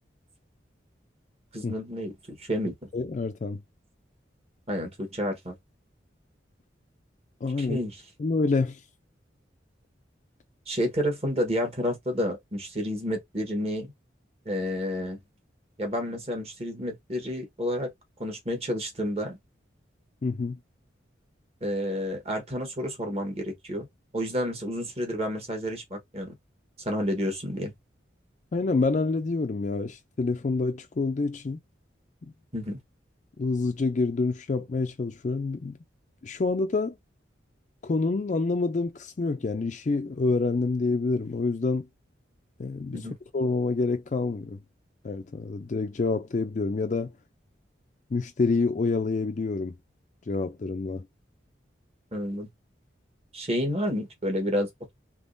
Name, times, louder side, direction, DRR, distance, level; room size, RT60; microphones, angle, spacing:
voice 1, 1.5-2.7 4.7-5.5 7.6-8.0 10.7-13.9 14.4-15.2 15.8-17.9 18.2-19.4 21.6-23.9 24.1-26.3 26.8-27.7 32.5-32.8 42.9-43.2 52.1-52.5 53.3-54.9, equal, 35° right, 1.2 m, -30 dB
voice 2, 2.9-3.6 7.4-7.8 8.2-8.8 20.2-20.6 28.5-31.6 33.4-35.8 36.2-37.0 37.8-41.8 42.6-44.6 45.0-47.1 48.1-49.7 50.3-51.0, left 3 dB, 40° left, 0.4 m, -27 dB
3.5 x 3.0 x 2.5 m
head